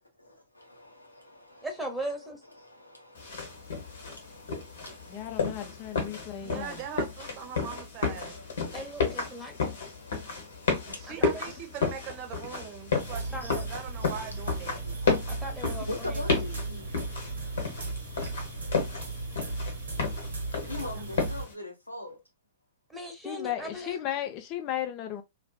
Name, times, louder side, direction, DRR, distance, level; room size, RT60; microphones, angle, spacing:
voice 1, 0.6-1.7 2.5-6.5 7.5-7.7 8.2-11.2 13.4-13.6 14.8-16.9 20.6-22.2, left 2 dB, 90° left, 0.8 m, -44 dB
voice 2, 1.6-2.4 8.7-9.8 11.1-11.4 13.3-13.6 15.3-16.2 22.9-24.0, right 1 dB, 5° right, 1.0 m, -38 dB
sound 1, 3.2-21.5, left 4 dB, 65° left, 1.0 m, -33 dB
voice 3, 5.1-6.8 23.2-25.2, left 11 dB, 40° left, 0.6 m, -35 dB
voice 4, 6.4-8.4 10.9-14.8 20.7-21.2, right 8 dB, 40° right, 0.8 m, -41 dB
sound 2, 13.0-21.4, right 3 dB, 70° right, 0.9 m, -36 dB
2.7 x 2.4 x 2.2 m
figure-of-eight pair, 100°, 0 cm